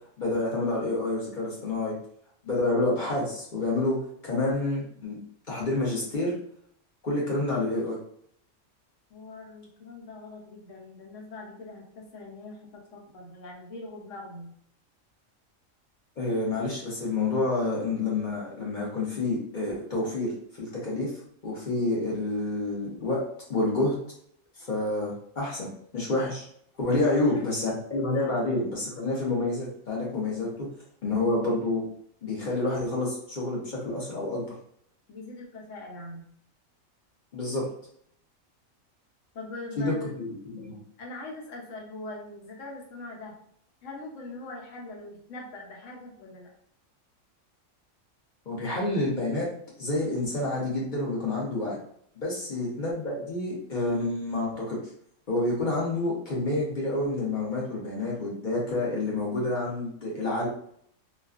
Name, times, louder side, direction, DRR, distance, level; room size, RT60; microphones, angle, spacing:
voice 1, 0.2-1.9 2.4-4.0 4.2-5.2 5.5-6.3 7.0-8.0 16.2-21.1 21.4-23.2 23.5-24.0 24.7-26.5 26.8-30.5 31.0-31.8 32.2-34.4 37.3-37.7 39.8-40.3 40.5-40.8 48.5-49.5 49.8-51.8 52.2-54.8 55.3-60.5, left 2 dB, 50° left, -4 dB, 0.6 m, -28 dB
voice 2, 9.1-14.5 27.0-27.5 28.2-28.4 30.5-30.6 35.1-36.2 39.3-40.1 41.0-43.3 43.8-46.5 52.3-52.5, left 2 dB, 75° left, -1 dB, 1.0 m, -42 dB
2.3 x 2.2 x 2.3 m, 0.66 s
omnidirectional pair, 1.4 m